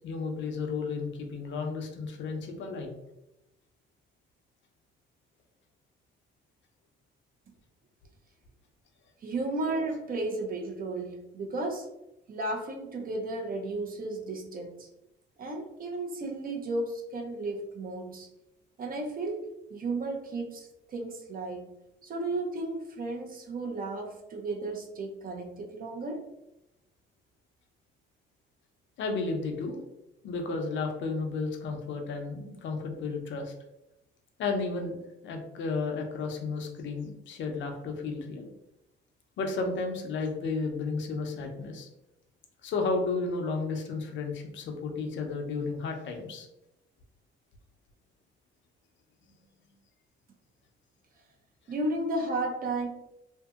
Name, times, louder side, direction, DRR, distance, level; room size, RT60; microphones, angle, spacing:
voice 1, 0.0-3.0 29.0-29.8 30.2-33.5 34.4-38.5 39.4-41.9 42.6-46.5, left 4 dB, 70° left, 3 dB, 0.6 m, -33 dB
voice 2, 9.2-11.9 12.3-14.9 15.4-18.3 18.8-21.7 22.0-26.3 51.7-52.9, right 2 dB, 45° right, 2 dB, 0.6 m, -34 dB
2.7 x 2.6 x 2.3 m, 0.90 s
cardioid pair, 90°, 20 cm